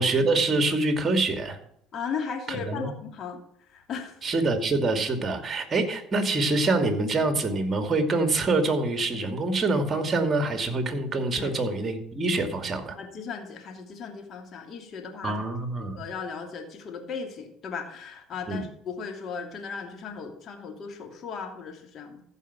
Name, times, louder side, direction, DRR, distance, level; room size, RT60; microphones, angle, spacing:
voice 1, 0.0-1.6 2.5-3.0 4.2-13.0 15.2-16.0 18.5-18.6, right 2 dB, 30° right, 7 dB, 2.4 m, -25 dB
voice 2, 1.9-3.4 3.7-4.2 11.4-11.5 12.9-15.5 16.0-22.2, left 6 dB, 50° left, 4 dB, 2.7 m, -36 dB
14.5 x 5.5 x 6.0 m, 0.71 s
supercardioid pair, 80°, 0 cm